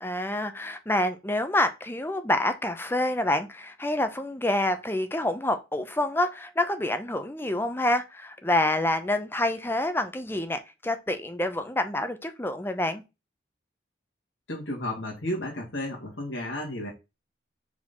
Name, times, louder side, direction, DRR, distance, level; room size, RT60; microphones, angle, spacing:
voice 1, 0.0-13.0, left 1 dB, 10° left, 0.7 m, -27 dB
voice 2, 14.5-16.9, left 1 dB, 80° left, 2.2 m, -33 dB
4.9 x 4.0 x 5.4 m
head